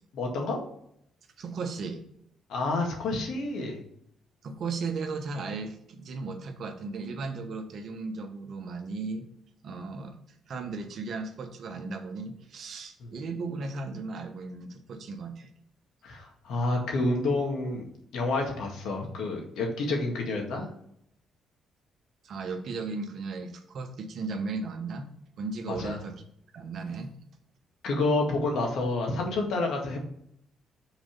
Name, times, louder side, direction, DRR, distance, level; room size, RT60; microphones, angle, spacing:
voice 1, 0.1-0.6 2.5-3.8 16.0-17.9 18.1-20.7 25.7-26.0 27.8-30.0, left 2 dB, 80° left, 1 dB, 1.8 m, -29 dB
voice 2, 1.4-2.1 4.4-9.3 9.6-10.2 10.5-15.5 22.2-25.1 25.4-26.2 26.5-27.2, right 4 dB, 60° right, 6 dB, 1.0 m, -36 dB
6.1 x 4.1 x 5.3 m, 0.72 s
cardioid pair, 90°, 0 cm